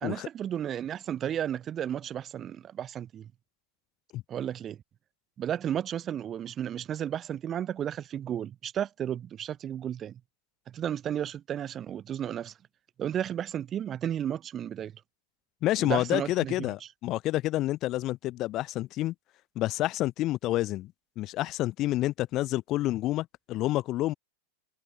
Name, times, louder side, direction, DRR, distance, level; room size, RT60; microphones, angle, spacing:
voice 1, 0.0-3.3 4.3-4.8 5.4-10.2 10.7-12.5 13.0-14.9 15.8-16.7, right 10 dB, 25° right, 0.5 m, -33 dB
voice 2, 15.6-19.1 19.6-24.1, left 16 dB, 35° left, 0.6 m, -29 dB
figure-of-eight pair, 90°, 0 cm